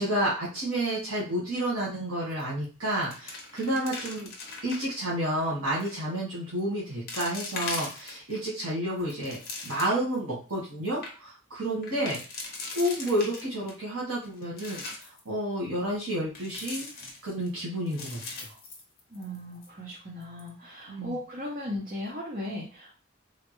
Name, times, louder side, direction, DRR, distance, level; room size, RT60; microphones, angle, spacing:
voice 1, 0.0-4.3 4.6-9.4 9.6-12.2 12.7-16.9 17.2-18.5 20.9-21.2, right 1 dB, 75° right, -7 dB, 1.4 m, -30 dB
sound 1, 2.3-2.7 2.9-5.0 5.7-6.0 6.6-6.7 7.1-8.4 8.9-10.2 10.6-10.7 10.9-11.1 11.8-13.7 14.2-15.2 16.4-17.5 17.9-19.4 19.6-19.7 20.2-20.5, left 3 dB, 45° left, 0.8 m, -40 dB
voice 2, 19.1-22.9, left 1 dB, 40° right, -5 dB, 0.8 m, -37 dB
3.6 x 2.2 x 3.0 m, 0.35 s
head